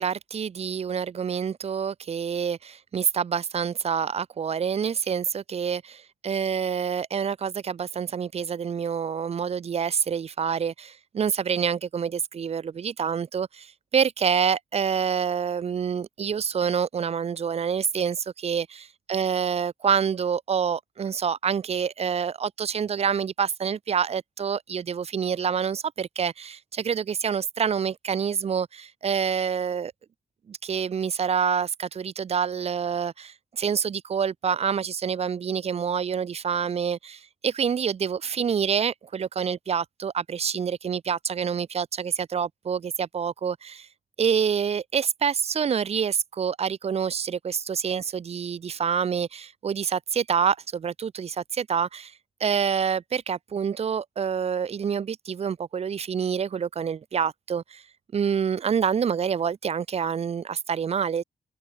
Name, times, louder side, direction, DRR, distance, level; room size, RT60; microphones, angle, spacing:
voice 1, 0.0-29.9 30.5-43.9 44.2-52.1 52.4-57.8 58.1-61.2, right 7 dB, 40° right, 0.4 m, -27 dB
open air
cardioid pair, 85°, 17 cm